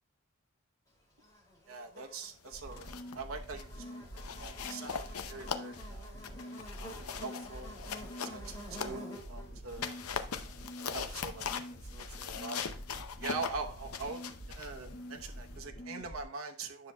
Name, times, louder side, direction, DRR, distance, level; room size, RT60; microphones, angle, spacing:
Buzz, 1.2-11.6, equal, 20° left, 2.4 m, -51 dB
voice 1, 1.7-6.1 6.8-7.7 8.2-10.0 10.4-10.6 10.9-12.6 13.2-16.9, right 4 dB, 75° right, 2 dB, 0.9 m, -43 dB
sound 1, 2.5-3.2 3.5-3.8 4.2-9.3 9.7-15.6, left 6 dB, 90° left, 0.6 m, -41 dB
sound 2, 2.5-16.2, equal, 60° left, 1.8 m, -46 dB
10.0 x 6.6 x 2.2 m, 0.40 s
head